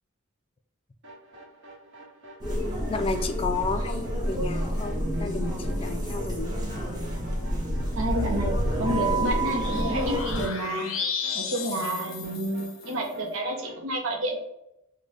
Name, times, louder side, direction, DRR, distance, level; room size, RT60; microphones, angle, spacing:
sound 1, 1.0-13.8, right 1 dB, 60° right, 1.1 m, -48 dB
sound 2, 2.4-10.5, right 1 dB, 20° right, 0.9 m, -29 dB
voice 1, 2.9-6.6, left 3 dB, 25° left, 7 dB, 0.3 m, -32 dB
sound 3, 7.2-12.9, left 3 dB, 80° left, 0.5 m, -34 dB
voice 2, 8.0-11.0 11.3-14.4, right 1 dB, 75° right, 1 dB, 0.7 m, -30 dB
3.8 x 2.2 x 3.2 m, 0.83 s
head